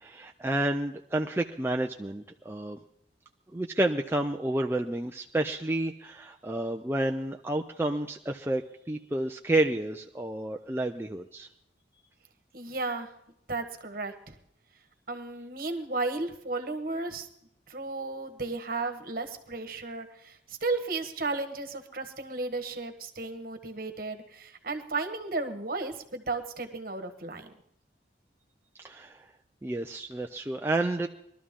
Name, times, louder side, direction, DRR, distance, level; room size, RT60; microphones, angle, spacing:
voice 1, 0.0-2.8 3.5-11.5 28.8-29.2 29.6-31.1, right 1 dB, 15° right, 3 dB, 0.4 m, -30 dB
voice 2, 12.5-13.1 13.5-14.4 15.1-17.3 17.7-27.5, right 3 dB, 50° right, 6 dB, 1.4 m, -34 dB
21.0 x 12.5 x 3.7 m, 0.73 s
head